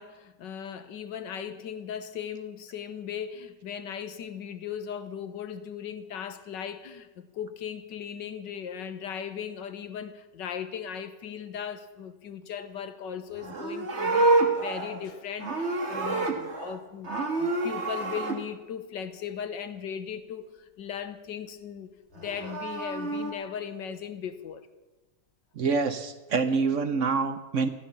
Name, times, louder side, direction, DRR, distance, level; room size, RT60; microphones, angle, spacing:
voice 1, 0.0-24.7, left 8 dB, 70° left, 1.7 m, -38 dB
Livestock farm animals working animals, 13.3-16.8 17.0-18.4 22.1-23.3, right 2 dB, 35° right, 2.0 m, -28 dB
voice 2, 25.6-27.7, right 4 dB, 55° right, 0.9 m, -26 dB
15.0 x 12.5 x 7.0 m
omnidirectional pair, 2.1 m